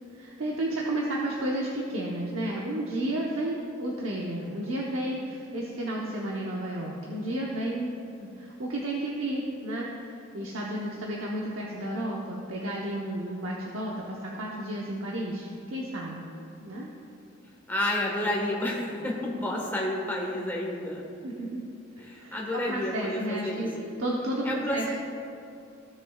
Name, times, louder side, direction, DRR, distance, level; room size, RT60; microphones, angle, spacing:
voice 1, 0.1-16.3 16.6-16.9 19.4-19.5 21.2-21.7 22.0-23.7 24.0-25.0, right 1 dB, 85° right, -3 dB, 0.9 m, -32 dB
voice 2, 17.7-21.0 22.0-23.6 24.4-25.0, left 1 dB, 10° left, -3 dB, 1.3 m, -30 dB
16.0 x 6.5 x 2.4 m, 2.6 s
head